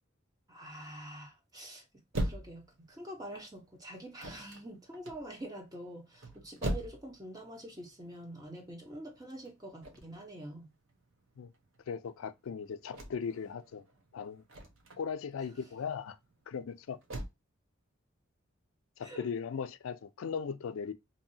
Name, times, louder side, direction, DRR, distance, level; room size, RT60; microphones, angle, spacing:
voice 1, 0.5-1.8 2.2-10.7 19.0-19.3, right 1 dB, 20° right, 0.9 m, -46 dB
sound 1, 2.1-17.3, right 1 dB, 70° right, 0.8 m, -42 dB
voice 2, 11.9-13.8 14.1-14.4 15.0-16.2 16.5-17.0 19.0-20.9, left 6 dB, 90° left, 0.4 m, -38 dB
2.7 x 2.7 x 2.6 m
head